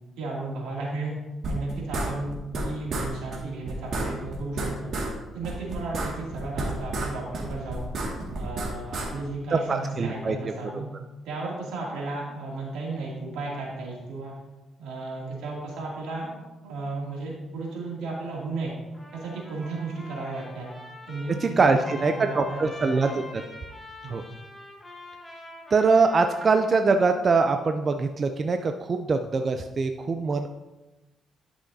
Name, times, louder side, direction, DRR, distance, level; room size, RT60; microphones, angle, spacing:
voice 1, 0.2-1.1 1.5-4.9 5.3-7.9 8.3-10.9 11.2-14.3 14.8-18.7 19.1-20.7 21.1-23.3 24.0-24.2, right 3 dB, 90° right, -4 dB, 2.5 m, -34 dB
sound 1, 1.4-2.6 2.9-3.1 3.3-3.4 3.7-5.1 5.4-7.1 7.3-9.1, right 2 dB, 60° right, 2.0 m, -31 dB
voice 2, 9.5-10.4 21.4-23.1 24.1-24.2 25.7-30.5, right 4 dB, 40° right, 6 dB, 0.5 m, -23 dB
Trumpet, 18.9-27.0, left 2 dB, 10° left, 1.5 m, -44 dB
11.5 x 6.2 x 2.7 m, 1.1 s
cardioid pair, 90°, 0 cm